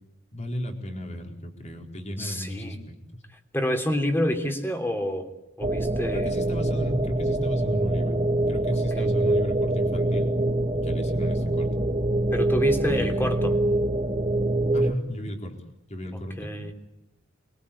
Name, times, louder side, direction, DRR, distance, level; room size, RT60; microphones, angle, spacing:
voice 1, 0.3-3.0 6.1-8.2 8.5-10.3 10.7-11.7 12.9-13.3 14.7-15.6 15.9-16.7, equal, 35° left, 3 dB, 4.2 m, -34 dB
voice 2, 2.2-2.8 3.5-5.3 5.6-6.3 8.9-9.1 12.3-13.6 16.1-16.7, equal, 10° left, 5 dB, 3.3 m, -28 dB
sound 1, 5.6-14.9, right 1 dB, 30° right, 1.4 m, -24 dB
27.5 x 22.5 x 8.6 m, 0.90 s
head